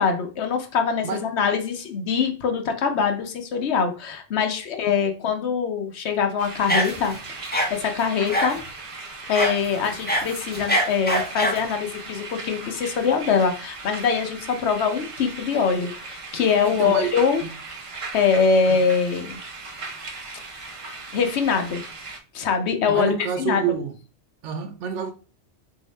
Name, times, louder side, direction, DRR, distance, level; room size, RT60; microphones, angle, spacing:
voice 1, 0.0-8.6 9.3-17.4 18.1-19.4 21.1-21.8 22.3-23.6, left 6 dB, 70° left, 0.9 m, -23 dB
sound 1, 6.4-22.2, right 3 dB, 40° right, 0.5 m, -38 dB
sound 2, 6.7-7.2 7.5-7.7 8.3-8.6 9.3-9.6 9.9-11.6, equal, 10° left, 0.5 m, -23 dB
voice 2, 16.6-17.1 17.4-17.5 18.7-18.8 22.9-23.9 24.4-25.1, right 7 dB, 80° right, 1.0 m, -28 dB
4.0 x 2.7 x 3.1 m
omnidirectional pair, 1.2 m